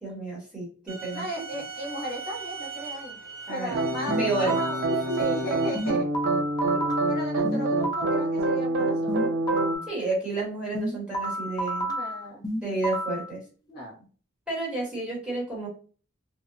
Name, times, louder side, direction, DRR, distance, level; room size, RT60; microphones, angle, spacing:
voice 1, 0.0-1.6 3.5-3.7 4.2-4.5 4.8-5.2 6.7-6.9 9.9-11.9 12.6-13.4 14.5-15.7, right 2 dB, 5° right, -6 dB, 1.0 m, -31 dB
sound 1, 0.9-5.9, right 4 dB, 90° right, 0.9 m, -40 dB
voice 2, 1.1-3.2 3.5-4.8 5.1-6.1 7.1-9.4 11.8-12.4 13.7-14.0, right 1 dB, 50° left, -1 dB, 0.7 m, -36 dB
sound 2, 3.7-9.8, right 2 dB, 60° right, 0.3 m, -26 dB
sound 3, 4.1-4.9 5.7-8.3 9.1-9.9 10.7-13.3, right 1 dB, 20° left, 0.4 m, -31 dB
2.8 x 2.0 x 2.5 m, 0.40 s
head